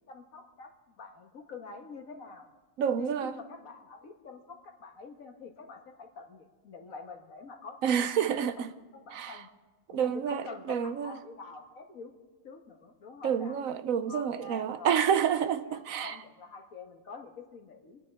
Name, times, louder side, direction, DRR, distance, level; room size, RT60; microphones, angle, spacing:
voice 1, 0.1-2.5 3.0-8.1 8.4-8.5 8.8-9.5 9.9-12.1 12.4-13.6 14.1-15.0 15.6-18.0, left 4 dB, 65° left, 1.9 m, -46 dB
voice 2, 2.8-3.3 7.8-8.7 9.1-9.4 9.9-11.2 13.2-16.2, right 8 dB, 70° right, 1.1 m, -29 dB
28.0 x 10.0 x 3.5 m
omnidirectional pair, 1.6 m